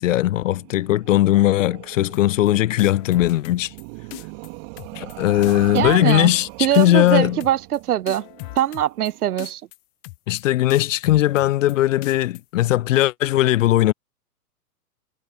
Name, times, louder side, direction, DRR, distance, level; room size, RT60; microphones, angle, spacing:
voice 1, 0.0-3.7 5.0-6.5 6.7-7.4 10.3-13.9, left 15 dB, 55° left, 0.5 m, -19 dB
sound 1, 0.5-9.5, right 30 dB, 40° right, 4.3 m, -40 dB
sound 2, 2.1-2.5 2.8-3.8 4.1-4.5 4.8-5.1 5.4-6.5 6.7-7.1 7.4-7.8 8.1-9.1 9.4-9.8 10.0-10.4 10.7-11.7 12.0-12.4, left 29 dB, 35° left, 1.1 m, -38 dB
voice 2, 5.7-6.3 6.6-8.2 8.6-9.6, right 12 dB, 75° right, 0.8 m, -22 dB
hypercardioid pair, 120°, 45 cm